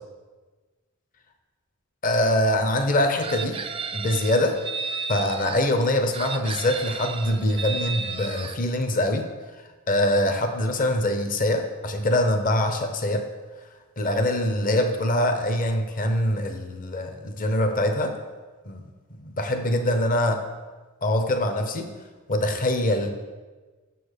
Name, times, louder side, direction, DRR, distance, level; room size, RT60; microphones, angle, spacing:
voice 1, 2.0-3.6 3.9-4.6 5.1-9.3 9.9-13.3 14.0-18.1 18.7-18.8 19.2-20.4 21.0-21.9 22.3-23.1, left 1 dB, 40° left, 6 dB, 0.8 m, -23 dB
Chicken rooster, 3.2-5.6 6.1-8.6, right 5 dB, 25° right, 0.5 m, -33 dB
6.9 x 6.8 x 6.7 m, 1.3 s
head